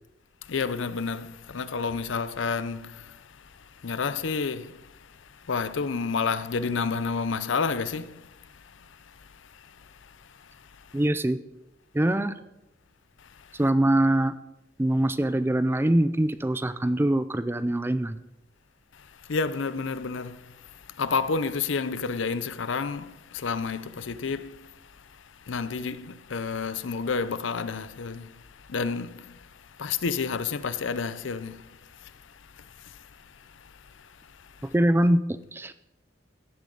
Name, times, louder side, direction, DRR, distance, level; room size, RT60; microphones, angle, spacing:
voice 1, 0.4-11.0 13.2-13.6 18.9-34.7, left 5 dB, 80° left, 0.6 m, -31 dB
voice 2, 10.9-11.4 11.9-12.3 13.5-14.3 14.8-18.2 34.7-35.2 35.5-35.7, right 1 dB, 10° right, 0.4 m, -23 dB
14.5 x 10.5 x 3.9 m
head